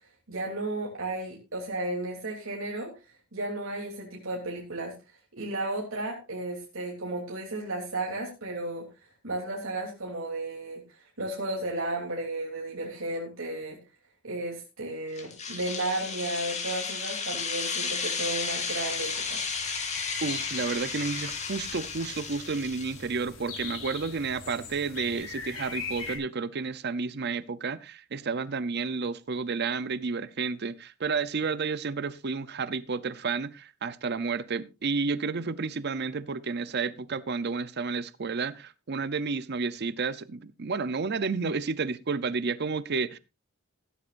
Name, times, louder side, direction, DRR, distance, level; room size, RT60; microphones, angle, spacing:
voice 1, 0.3-4.9 5.4-8.8 9.2-13.8 14.2-19.4, right 2 dB, 85° right, 3.2 m, -34 dB
sound 1, 15.2-23.0, left 5 dB, 35° left, 3.1 m, -33 dB
sound 2, 17.4-17.7 18.1-26.2, left 5 dB, 85° left, 5.3 m, -42 dB
voice 2, 20.2-43.2, right 4 dB, 50° right, 0.6 m, -31 dB
15.5 x 12.5 x 2.6 m
head